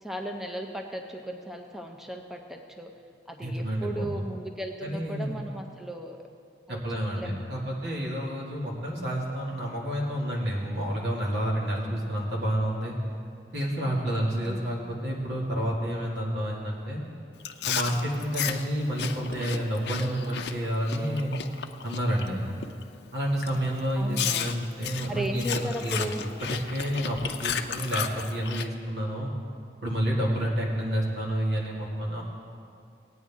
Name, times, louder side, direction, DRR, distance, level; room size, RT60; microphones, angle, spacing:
voice 1, 0.0-2.9 3.3-6.2 6.7-6.8 7.2-7.3 14.5-15.0 24.0-24.5 25.1-26.2, right 1 dB, ahead, 3 dB, 0.5 m, -36 dB
voice 2, 3.4-4.2 4.8-5.4 6.7-12.9 13.5-17.0 17.6-21.4 21.8-22.5 23.1-26.1 26.4-29.3 29.8-32.2, equal, 80° right, -3 dB, 2.3 m, -29 dB
Chewing mastication, 17.4-22.3 22.6-22.9 23.4-23.6 24.1-28.7, left 8 dB, 75° left, 0.5 m, -33 dB
17.5 x 9.3 x 3.6 m, 2.5 s
head